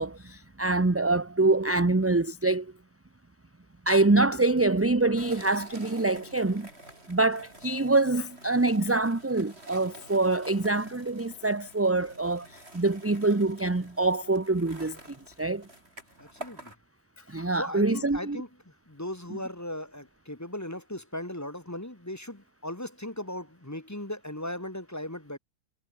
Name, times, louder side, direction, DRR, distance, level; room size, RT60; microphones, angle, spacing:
voice 1, 0.0-2.7 3.9-6.7 7.1-15.0 15.4-15.7 17.3-18.4, right 2 dB, 15° right, 0.7 m, -25 dB
sound 1, 5.2-16.8, right 1 dB, 55° right, 7.9 m, -49 dB
voice 2, 16.2-16.7 17.6-25.4, left 1 dB, 15° left, 1.8 m, -38 dB
omnidirectional pair, 1.3 m